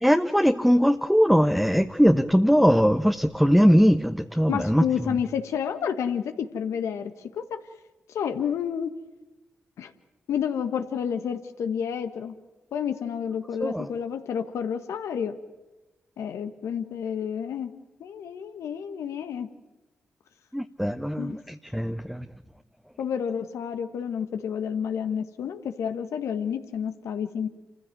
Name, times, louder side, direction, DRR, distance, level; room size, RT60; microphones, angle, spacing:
voice 1, 0.0-4.8 13.6-13.9 20.5-22.2, equal, ahead, 6 dB, 1.1 m, -21 dB
voice 2, 4.5-7.6 8.1-8.9 9.8-9.9 10.3-12.3 12.7-15.3 16.2-17.7 18.0-19.5 21.2-21.4 23.0-27.5, left 7 dB, 80° left, 8 dB, 1.6 m, -30 dB
28.0 x 15.5 x 9.3 m, 1.1 s
supercardioid pair, 40°, 5 cm